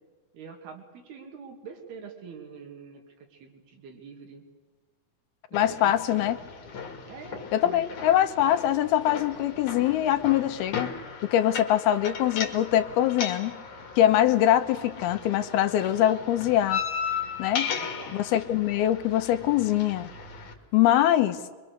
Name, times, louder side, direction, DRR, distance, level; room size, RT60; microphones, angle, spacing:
voice 1, 0.3-3.0 3.3-4.4 5.5-6.5 7.1-7.9 17.7-18.2, right 6 dB, 75° right, 3 dB, 4.4 m, -45 dB
voice 2, 5.5-6.4 7.5-10.9 11.3-13.6 14.0-16.8 17.4-17.8 18.1-20.1 20.7-21.4, left 12 dB, 80° left, 9 dB, 2.9 m, -23 dB
sound 1, 5.5-20.5, left 6 dB, 55° left, 3.7 m, -36 dB
25.0 x 24.5 x 6.6 m, 1.4 s
omnidirectional pair, 4.5 m